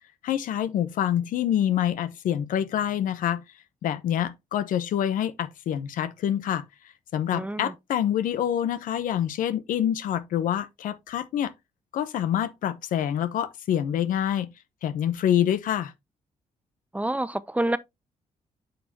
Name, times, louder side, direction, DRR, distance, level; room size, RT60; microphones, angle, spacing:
voice 1, 0.2-3.4 3.8-6.6 7.1-11.5 11.9-14.5 14.8-15.9, left 10 dB, 85° left, 0.8 m, -26 dB
voice 2, 7.3-7.7 16.9-17.8, right 1 dB, 10° right, 0.5 m, -27 dB
8.9 x 5.2 x 2.8 m
cardioid pair, 80°, 13 cm